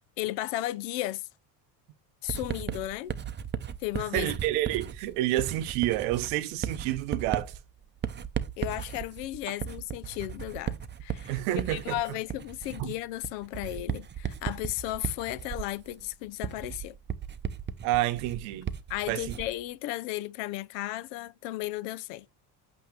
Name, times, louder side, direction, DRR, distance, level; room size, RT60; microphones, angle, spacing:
voice 1, 0.2-1.3 2.2-3.1 3.8-4.3 8.6-17.0 18.9-22.3, left 16 dB, 85° left, 0.7 m, -34 dB
Writing, 2.3-19.6, right 8 dB, 25° right, 0.6 m, -36 dB
voice 2, 4.1-7.5 11.3-12.0 12.8-12.9 17.8-18.7 19.1-19.3, right 15 dB, 85° right, 0.9 m, -29 dB
8.3 x 2.9 x 4.9 m
supercardioid pair, 90°, 46 cm